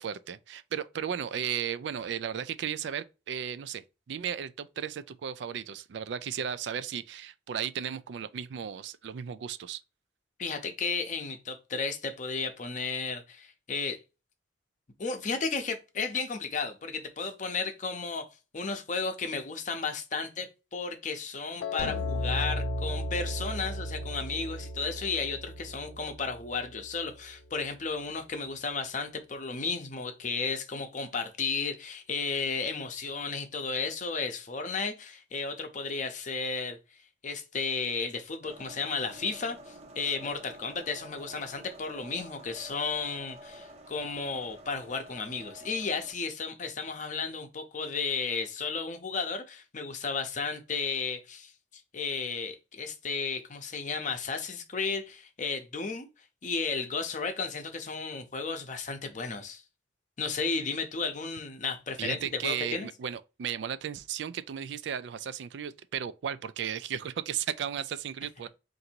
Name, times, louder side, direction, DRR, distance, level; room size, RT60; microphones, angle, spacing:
voice 1, 0.0-9.8 62.0-68.5, right 8 dB, 70° right, 0.3 m, -35 dB
voice 2, 10.4-14.0 15.0-18.3 18.5-36.8 37.2-51.5 51.9-56.1 56.4-59.6 60.2-62.9, left 4 dB, 40° left, 0.6 m, -33 dB
Piano, 21.6-27.7, left 8 dB, 75° left, 0.3 m, -42 dB
sound 1, 21.8-27.2, right 1 dB, 55° right, 1.1 m, -36 dB
sound 2, 38.4-46.1, equal, 35° right, 0.6 m, -49 dB
3.9 x 2.6 x 4.3 m
head